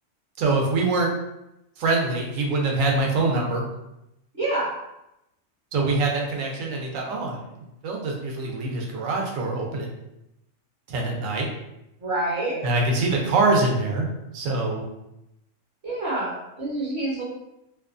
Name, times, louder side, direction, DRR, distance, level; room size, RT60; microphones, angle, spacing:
voice 1, 0.4-1.1 1.8-3.6 5.7-7.5 7.8-9.9 10.9-11.5 12.6-14.1 14.3-14.9, right 3 dB, 80° right, 0 dB, 1.0 m, -24 dB
voice 2, 4.4-4.7 12.0-12.6 15.8-17.2, right 2 dB, 55° right, -6 dB, 1.0 m, -27 dB
2.6 x 2.2 x 2.4 m, 0.87 s
omnidirectional pair, 1.4 m